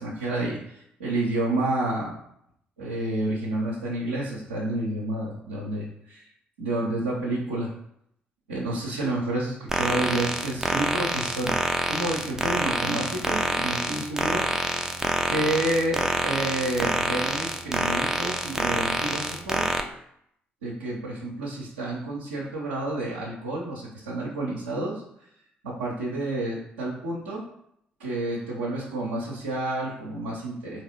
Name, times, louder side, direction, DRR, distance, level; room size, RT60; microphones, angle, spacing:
voice 1, 0.0-2.2 2.8-6.3 6.6-7.7 8.5-11.5 11.9-14.5 15.3-19.7 20.6-25.0 25.6-27.4 28.0-30.8, right 1 dB, 80° right, -6 dB, 0.6 m, -29 dB
sound 1, 9.7-19.8, right 1 dB, 10° right, 0.5 m, -27 dB
3.9 x 3.0 x 2.9 m, 0.73 s
figure-of-eight pair, 45°, 5 cm